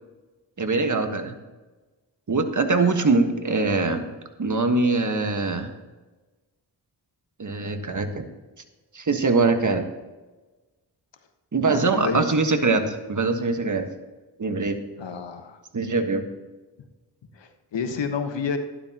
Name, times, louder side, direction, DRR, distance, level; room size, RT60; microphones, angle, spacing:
voice 1, 0.6-1.3 2.3-4.1 4.4-5.7 7.4-8.2 8.9-9.9 11.5-13.8 14.4-14.8 15.7-16.2, right 3 dB, 45° right, 6 dB, 1.5 m, -23 dB
voice 2, 11.7-12.3 15.0-15.6 17.4-18.6, left 5 dB, 90° left, 7 dB, 1.3 m, -29 dB
12.5 x 11.5 x 2.9 m, 1.2 s
cardioid pair, 60°, 42 cm